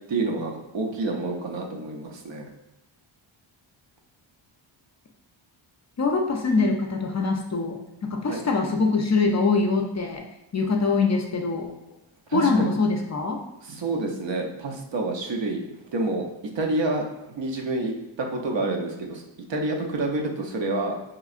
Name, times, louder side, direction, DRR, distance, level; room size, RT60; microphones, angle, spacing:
voice 1, 0.1-2.5 8.3-8.4 12.3-12.7 13.6-16.3 16.5-19.2 19.5-21.0, right 2 dB, 65° right, 1 dB, 0.7 m, -28 dB
voice 2, 6.0-10.2 10.5-11.7 12.3-13.4, left 3 dB, 35° left, 2 dB, 0.4 m, -23 dB
4.6 x 3.1 x 2.4 m, 0.95 s
wide cardioid pair, 125°, 48 cm